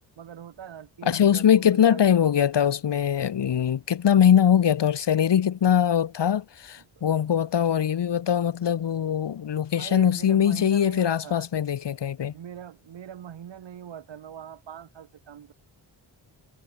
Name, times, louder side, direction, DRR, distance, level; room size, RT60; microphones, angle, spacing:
voice 1, 0.2-2.3 6.8-7.2 9.8-11.5 12.3-15.5, right 9 dB, 75° right, 7.1 m, -42 dB
voice 2, 1.1-12.3, left 9 dB, 65° left, 2.7 m, -22 dB
cardioid pair, 80°, 44 cm